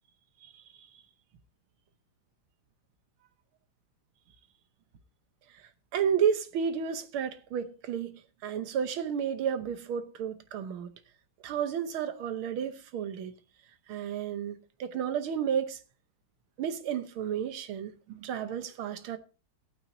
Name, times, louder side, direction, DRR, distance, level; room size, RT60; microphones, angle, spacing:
voice 1, 0.4-0.9 5.9-10.9 11.4-13.3 13.9-15.8 16.6-19.2, right 8 dB, 80° right, 1.8 m, -32 dB
16.5 x 8.9 x 2.7 m
omnidirectional pair, 2.3 m